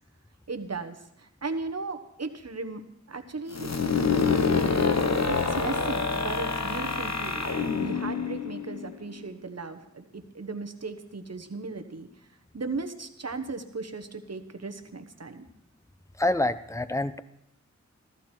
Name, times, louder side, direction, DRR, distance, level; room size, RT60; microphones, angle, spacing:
voice 1, 0.5-3.7 4.7-4.8 5.3-12.3 12.5-15.5, right 3 dB, 60° right, 7 dB, 1.2 m, -37 dB
sound 1, 3.5-9.2, left 5 dB, 65° left, 1.2 m, -26 dB
voice 2, 16.2-17.2, left 1 dB, 10° left, 14 dB, 0.6 m, -26 dB
14.5 x 14.0 x 4.5 m, 0.80 s
wide cardioid pair, 55°, 30 cm